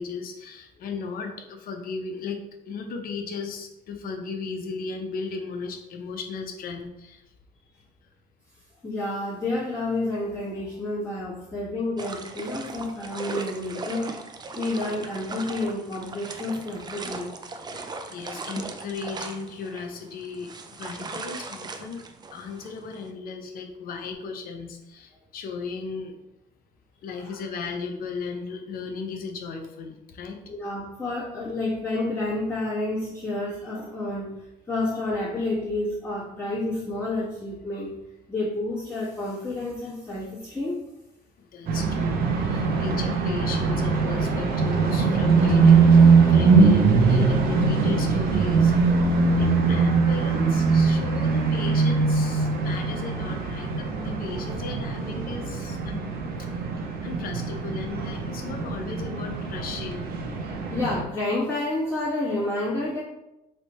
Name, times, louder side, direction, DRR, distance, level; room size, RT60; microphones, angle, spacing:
voice 1, 0.0-2.4 2.7-7.2 17.7-22.0 22.3-26.1 27.0-30.4 41.4-42.2 42.5-48.7 49.4-56.1 56.4-56.5 57.0-60.1, left 5 dB, 60° left, 4 dB, 0.7 m, -36 dB
voice 2, 8.8-14.2 14.5-17.3 27.2-27.3 30.4-38.0 38.3-40.9 60.4-63.0, left 2 dB, 15° left, -10 dB, 1.4 m, -30 dB
sound 1, 12.0-23.1, right 3 dB, 25° right, 0.4 m, -38 dB
sound 2, 41.7-61.0, right 4 dB, 65° right, 0.7 m, -21 dB
3.3 x 2.7 x 4.2 m, 0.90 s
cardioid pair, 110°, 17 cm